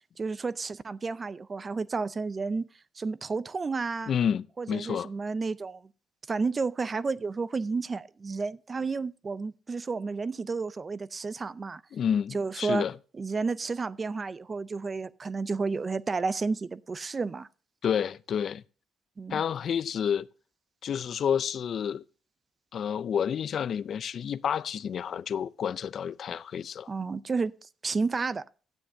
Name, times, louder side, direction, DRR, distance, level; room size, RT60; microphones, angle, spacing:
voice 1, 0.2-2.7 3.0-4.1 4.6-5.8 6.3-11.8 12.3-12.8 13.2-17.5 19.2-19.4 26.9-27.5 27.8-28.4, right 4 dB, 35° right, 0.4 m, -31 dB
voice 2, 4.1-5.1 11.9-12.9 17.8-18.6 19.3-20.3 20.8-22.0 22.7-26.9, left 8 dB, 60° left, 0.4 m, -29 dB
12.5 x 9.5 x 2.7 m
cardioid pair, 90°, 0 cm